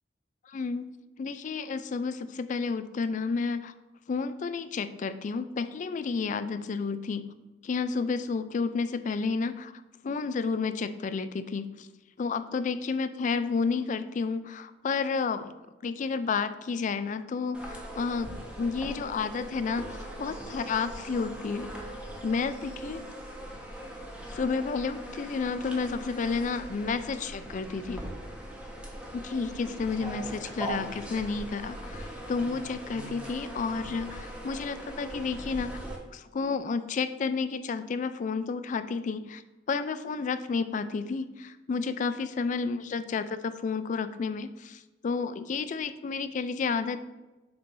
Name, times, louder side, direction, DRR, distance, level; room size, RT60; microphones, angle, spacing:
voice 1, 0.5-0.9 1.2-3.7 4.1-7.3 7.6-9.7 10.0-11.9 12.2-15.5 15.8-21.7 22.2-23.1 24.3-28.0 29.1-35.8 36.1-39.4 39.7-47.0, left 4 dB, 45° left, 12 dB, 0.3 m, -31 dB
sound 1, 17.5-36.0, right 1 dB, 5° right, 0.9 m, -40 dB
6.9 x 2.6 x 5.3 m, 1.1 s
head